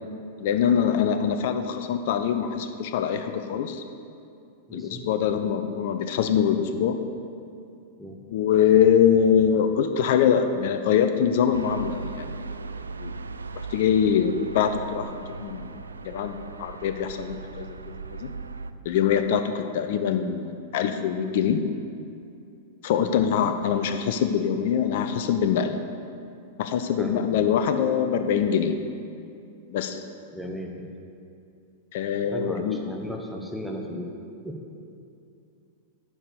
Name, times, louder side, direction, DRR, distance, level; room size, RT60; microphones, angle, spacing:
voice 1, 0.4-3.8 4.7-7.0 8.3-12.3 13.0-13.1 13.7-15.7 16.0-18.3 18.8-21.6 22.8-25.8 26.6-28.8 29.7-30.0 31.9-32.8, left 8 dB, 55° left, 8 dB, 0.5 m, -23 dB
voice 2, 4.7-5.0 8.0-8.2 23.0-23.1 27.0-27.4 30.3-30.9 32.3-34.1 34.4-34.6, equal, ahead, 1 dB, 1.0 m, -35 dB
sound 1, 11.5-18.7, right 4 dB, 80° right, 0.3 m, -38 dB
9.6 x 4.9 x 6.8 m, 2.5 s
figure-of-eight pair, 95°, 0 cm